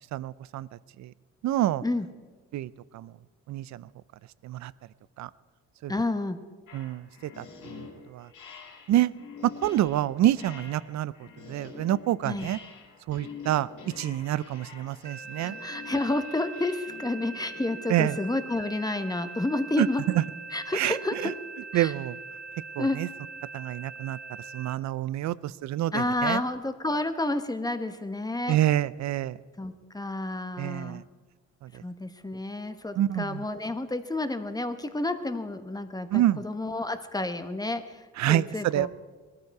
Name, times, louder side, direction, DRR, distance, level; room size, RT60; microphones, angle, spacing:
voice 1, 0.1-0.7 1.0-1.1 1.4-1.8 2.5-3.1 3.5-3.8 4.4-4.7 5.2-5.3 5.8-5.9 6.7-7.0 7.4-7.5 7.7-7.9 8.1-8.3 8.9-9.1 9.4-11.1 11.5-12.6 13.1-13.7 14.0-15.6 17.9-18.1 19.8-19.9 20.7-21.0 21.2-21.3 21.7-22.2 22.8-23.1 23.5-24.2 24.5-26.4 28.5-29.4 30.6-31.0 33.0-33.4 36.1-36.4 38.2-38.9, right 13 dB, 65° right, 20 dB, 0.5 m, -27 dB
voice 2, 5.9-6.4 12.2-12.5 15.4-20.0 20.5-21.3 21.7-21.9 22.8-23.0 25.9-28.6 29.6-31.0 31.8-38.9, left 2 dB, 15° left, 9 dB, 1.1 m, -30 dB
sound 1, 6.7-17.8, left 5 dB, 80° left, 2.5 m, -46 dB
sound 2, 15.0-24.7, right 4 dB, 35° right, 1.0 m, -42 dB
20.0 x 13.5 x 4.7 m, 1.4 s
cardioid pair, 90°, 30 cm